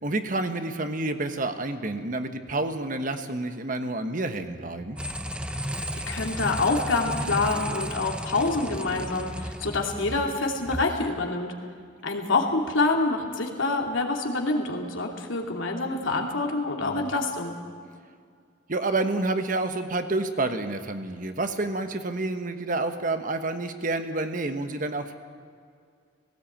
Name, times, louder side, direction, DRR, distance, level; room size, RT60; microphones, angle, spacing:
voice 1, 0.0-5.0 16.8-17.1 18.7-25.1, right 2 dB, 45° right, 8 dB, 1.2 m, -29 dB
sound 1, 5.0-10.9, equal, 5° right, 0.8 m, -34 dB
voice 2, 6.1-11.5 12.0-17.6, left 3 dB, 85° left, 1 dB, 2.8 m, -26 dB
17.5 x 17.5 x 8.7 m, 2.2 s
head